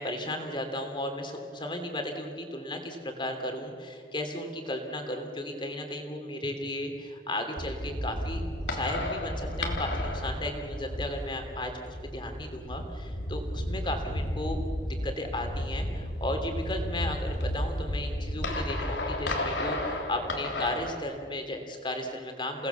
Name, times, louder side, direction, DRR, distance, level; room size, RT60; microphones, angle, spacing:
voice 1, 0.0-8.4 8.7-14.6 14.9-22.7, left 1 dB, 25° left, 5 dB, 3.1 m, -35 dB
sound 1, 7.6-21.0, left 1 dB, 90° left, 3.3 m, -33 dB
29.5 x 18.5 x 7.1 m, 2.4 s
head